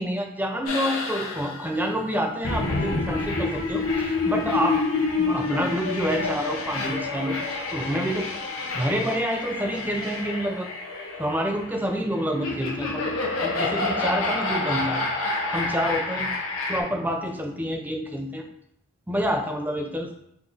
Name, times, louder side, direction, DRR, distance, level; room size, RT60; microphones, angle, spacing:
voice 1, 0.0-4.8 5.2-7.4 7.7-8.3 8.7-10.7 11.2-15.0 15.5-16.3 16.7-18.4 19.1-20.1, equal, 10° right, 3 dB, 0.4 m, -28 dB
sound 1, 0.7-16.8, left 3 dB, 85° left, 0.9 m, -28 dB
4.8 x 2.6 x 3.7 m, 0.74 s
head